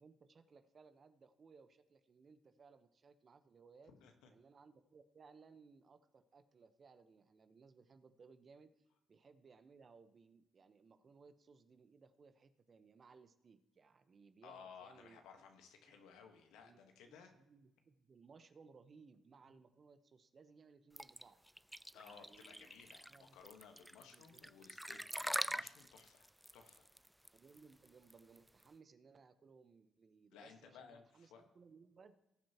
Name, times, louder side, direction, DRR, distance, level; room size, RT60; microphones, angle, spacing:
voice 1, 0.0-3.9 4.3-8.7 9.1-15.2 16.6-16.8 17.0-21.4 21.9-22.7 23.1-23.4 24.0-24.5 27.3-32.1, right 5 dB, 45° right, 10 dB, 1.0 m, -63 dB
voice 2, 3.9-4.3 14.4-17.3 19.5-19.6 21.9-26.9 30.3-31.4, left 6 dB, 80° left, 4 dB, 1.4 m, -59 dB
sound 1, 21.0-28.6, equal, 5° right, 0.3 m, -44 dB
19.0 x 7.6 x 3.0 m, 0.89 s
supercardioid pair, 60°, 0 cm